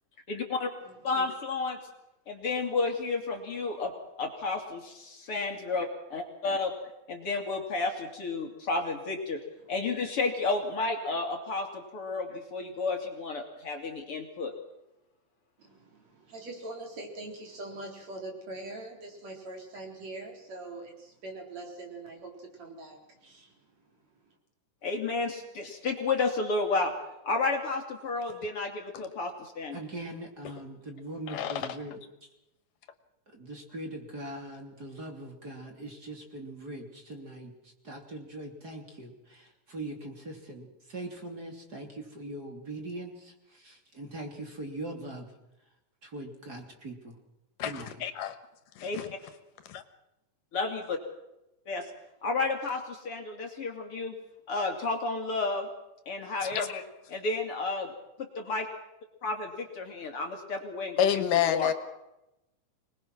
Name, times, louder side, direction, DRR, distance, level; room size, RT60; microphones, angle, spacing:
voice 1, 0.3-0.7 1.0-1.8 2.3-6.7 7.1-9.4 9.7-14.5 24.8-26.9 27.2-29.8 48.8-49.0 50.5-51.0 51.7-51.9 52.2-54.2 54.5-55.7 56.1-56.8 57.1-57.9 58.2-58.7 59.2-61.1 61.5-61.7, left 3 dB, 45° left, 3 dB, 3.2 m, -31 dB
voice 2, 0.8-1.3 5.2-5.3 9.6-9.7 15.6-23.5, right 2 dB, 55° right, 2 dB, 5.1 m, -43 dB
voice 3, 29.7-32.3 33.3-45.3 46.0-47.2 47.6-48.0, right 1 dB, 30° right, 3 dB, 3.1 m, -41 dB
voice 4, 31.3-31.7 47.6-48.4 48.8-49.1 49.7-49.8 56.4-56.8 61.0-61.7, left 9 dB, 85° left, 11 dB, 2.9 m, -29 dB
25.5 x 20.5 x 6.1 m, 0.91 s
omnidirectional pair, 3.8 m